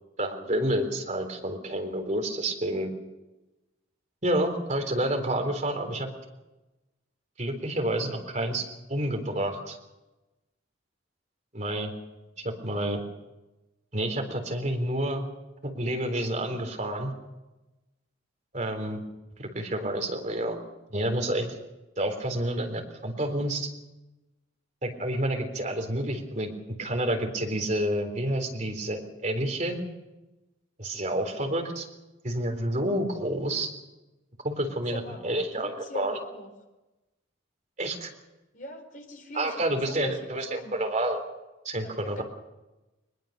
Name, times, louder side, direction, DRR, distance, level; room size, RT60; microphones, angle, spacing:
voice 1, 0.2-2.9 4.2-6.1 7.4-8.6 8.9-9.8 11.5-11.9 12.4-13.0 13.9-15.3 15.6-17.1 18.5-19.0 19.4-20.6 20.9-21.5 22.0-23.7 24.8-26.5 26.8-29.8 30.8-31.9 32.2-33.7 34.4-36.2 37.8-38.1 39.4-41.2 41.7-42.2, right 1 dB, 40° right, 3 dB, 3.8 m, -29 dB
voice 2, 34.7-35.2 35.5-36.5 38.5-40.7 41.8-42.2, left 1 dB, 45° left, 4 dB, 4.7 m, -42 dB
22.5 x 21.5 x 6.7 m, 1.0 s
head